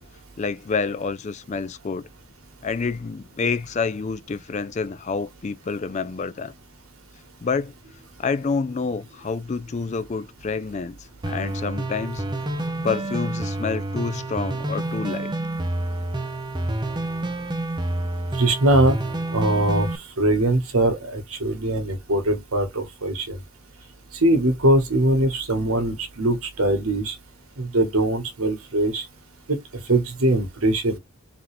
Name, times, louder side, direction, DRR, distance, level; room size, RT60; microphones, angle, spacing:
voice 1, 0.4-2.1 2.6-6.5 7.4-7.7 8.2-11.0 11.3-12.3 12.8-15.3, left 4 dB, 30° left, 0.3 m, -28 dB
sound 1, 11.2-20.0, right 1 dB, 20° right, 0.6 m, -28 dB
voice 2, 18.4-19.0 19.3-23.4 24.1-27.2 27.6-29.0 29.5-29.6 29.9-31.0, right 1 dB, 80° right, 1.4 m, -21 dB
3.9 x 3.0 x 3.3 m
head